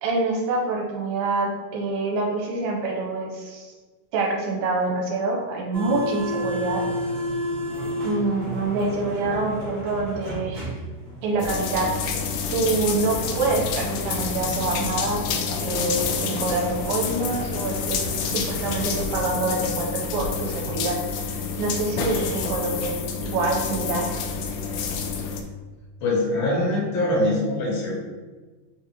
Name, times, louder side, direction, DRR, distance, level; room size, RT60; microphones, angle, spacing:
voice 1, 0.0-3.7 4.1-6.8 8.0-10.7 11.2-11.9 12.5-21.0 21.3-22.9 23.2-24.1, right 3 dB, 80° right, -2 dB, 2.5 m, -26 dB
sound 1, 5.7-18.8, equal, 55° right, 1.0 m, -34 dB
sound 2, 11.4-25.4, left 5 dB, 90° left, 2.5 m, -28 dB
voice 2, 26.0-28.0, left 1 dB, 75° left, -4 dB, 2.6 m, -23 dB
6.0 x 2.4 x 2.9 m, 1.3 s
omnidirectional pair, 4.4 m